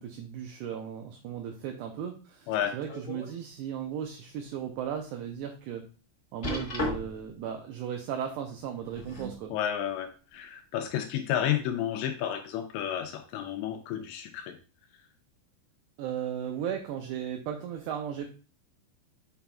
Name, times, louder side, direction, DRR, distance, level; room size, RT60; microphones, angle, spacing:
voice 1, 0.0-5.9 6.3-9.5 16.0-18.3, right 9 dB, 80° right, 4 dB, 2.4 m, -36 dB
sound 1, 2.5-3.3 3.8-4.0 4.5-4.6 6.4-7.3 8.7-9.4 10.3-10.4, left 2 dB, 50° left, 0.8 m, -35 dB
voice 2, 9.5-14.6 14.9-15.1, left 10 dB, 80° left, 6 dB, 2.7 m, -31 dB
8.8 x 5.8 x 2.3 m, 0.36 s
omnidirectional pair, 5.4 m